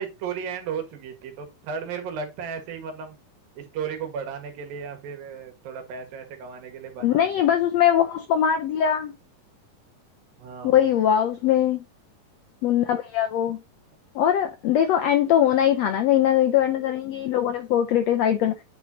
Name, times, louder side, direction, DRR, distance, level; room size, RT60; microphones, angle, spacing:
voice 1, 0.0-3.2 3.6-7.3 10.4-10.9, right 6 dB, 90° right, 3.4 m, -34 dB
voice 2, 7.0-9.1 10.6-11.8 12.6-13.6 14.1-18.5, left 10 dB, 85° left, 1.5 m, -21 dB
9.3 x 4.6 x 2.8 m
omnidirectional pair, 3.9 m